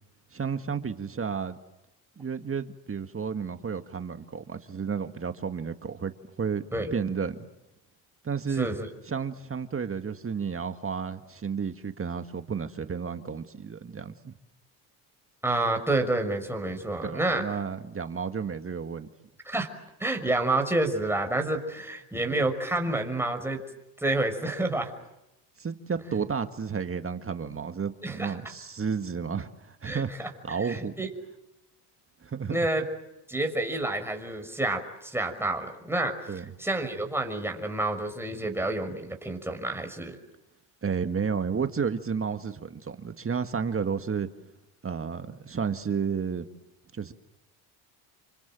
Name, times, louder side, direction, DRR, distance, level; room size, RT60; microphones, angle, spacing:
voice 1, 0.3-1.6 2.2-6.6 6.9-7.4 8.2-8.7 9.1-14.3 17.0-19.1 25.6-30.9 32.2-32.7 36.3-36.5 40.8-44.3 44.8-46.5 46.9-47.1, right 6 dB, 30° right, 8 dB, 1.9 m, -32 dB
voice 2, 8.6-8.9 15.4-17.4 19.5-19.7 20.0-23.6 24.0-24.9 28.0-28.3 29.8-30.3 30.6-31.1 32.5-32.8 33.3-36.1 36.6-40.2, right 2 dB, 5° right, 4 dB, 6.0 m, -29 dB
29.0 x 25.0 x 7.7 m, 0.91 s
supercardioid pair, 80°, 46 cm